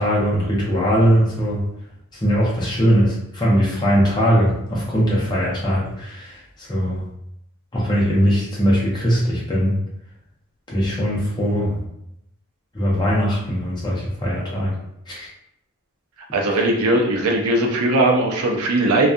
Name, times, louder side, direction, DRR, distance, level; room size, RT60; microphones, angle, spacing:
voice 1, 0.0-1.6 2.1-7.0 7.7-9.8 10.7-11.8 12.7-14.7 15.1-15.3 16.5-16.6, equal, 20° left, -6 dB, 0.6 m, -20 dB
voice 2, 16.3-19.1, right 2 dB, 85° right, 0 dB, 0.5 m, -19 dB
2.6 x 2.3 x 2.3 m, 0.79 s
head